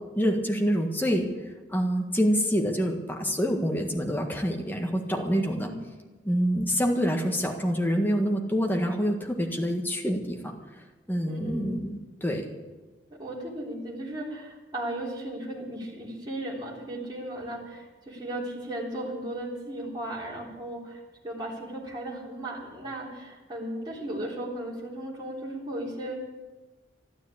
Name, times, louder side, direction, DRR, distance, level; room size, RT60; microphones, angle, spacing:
voice 1, 0.1-1.3 1.7-5.7 6.2-10.5 11.1-12.5, equal, 10° left, 1 dB, 1.6 m, -26 dB
voice 2, 5.5-5.9 11.3-11.7 13.1-26.1, right 1 dB, 20° right, -5 dB, 3.7 m, -36 dB
12.5 x 12.0 x 8.6 m, 1.2 s
head